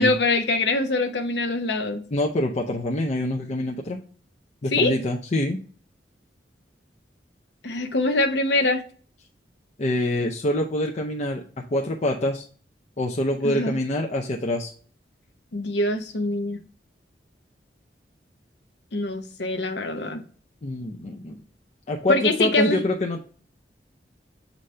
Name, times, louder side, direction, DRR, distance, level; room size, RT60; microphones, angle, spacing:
voice 1, 0.0-2.0 4.7-4.9 7.6-8.8 13.4-13.8 15.5-16.6 18.9-20.2 22.1-22.8, left 2 dB, 70° left, 7 dB, 0.8 m, -23 dB
voice 2, 2.1-4.0 4.6-5.6 9.8-11.4 11.7-12.4 13.0-14.7 20.6-21.4 21.9-23.2, left 1 dB, 40° left, 1 dB, 0.6 m, -25 dB
7.5 x 4.1 x 3.2 m, 0.43 s
head